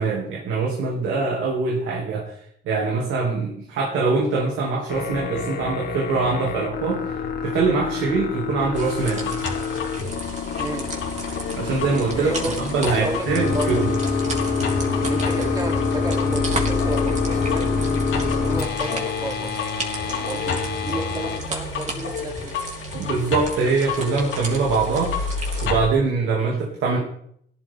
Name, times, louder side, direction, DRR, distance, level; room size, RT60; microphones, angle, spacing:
voice 1, 0.0-2.3 2.6-7.1 7.4-9.3 11.5-12.3 12.7-13.9 22.9-27.0, right 4 dB, 85° right, -2 dB, 2.8 m, -23 dB
sound 1, 4.9-21.4, left 4 dB, 55° left, 2.1 m, -26 dB
sound 2, 8.7-25.9, left 4 dB, 80° left, 3.5 m, -31 dB
sound 3, 8.7-25.7, right 2 dB, 35° right, 3.4 m, -36 dB
voice 2, 10.6-10.9 12.2-13.8 15.0-17.8 18.4-19.6 20.0-22.6, right 1 dB, 20° right, 1 dB, 3.3 m, -32 dB
16.5 x 12.0 x 3.8 m, 0.68 s
cardioid pair, 90°, 20 cm